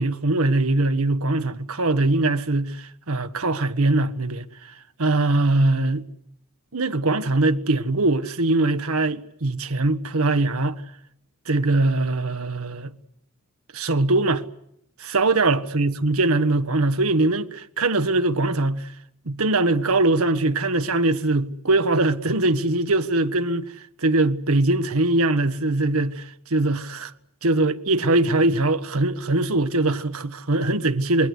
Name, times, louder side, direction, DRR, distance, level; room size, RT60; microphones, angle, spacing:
voice 1, 0.0-4.7 5.0-6.0 6.7-10.8 11.5-12.9 13.7-14.4 15.0-18.9 19.2-23.6 24.0-27.1 27.4-31.3, right 2 dB, 80° right, 1.4 m, -22 dB
27.5 x 21.0 x 8.2 m
head